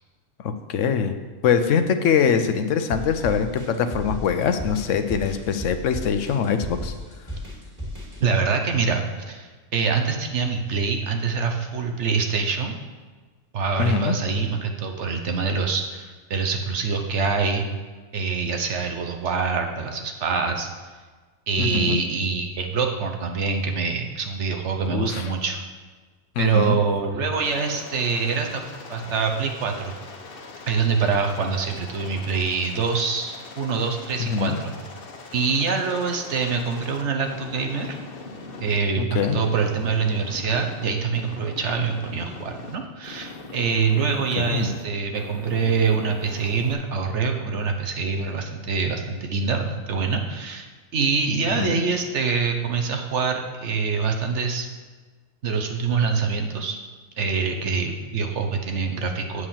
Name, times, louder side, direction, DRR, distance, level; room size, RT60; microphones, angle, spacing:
voice 1, 0.4-1.2 1.4-6.9 13.8-14.1 21.6-22.0 24.9-25.3 26.4-26.8 34.2-34.6 39.0-39.4 44.4-44.7 51.5-51.8, left 6 dB, 80° left, 8 dB, 1.0 m, -23 dB
sound 1, 2.9-8.2, equal, 15° right, 2.4 m, -34 dB
voice 2, 8.2-12.7 13.5-17.7 18.1-20.7 21.5-25.6 26.4-30.0 30.7-34.7 35.3-38.0 38.6-54.7 55.4-56.8 57.2-59.5, right 5 dB, 70° right, 4 dB, 1.2 m, -25 dB
Aircraft, 27.3-38.8 39.1-40.9 41.1-42.8 43.0-44.8 45.1-46.7, left 3 dB, 50° left, 1.2 m, -41 dB
8.4 x 4.9 x 7.3 m, 1.4 s
omnidirectional pair, 1.3 m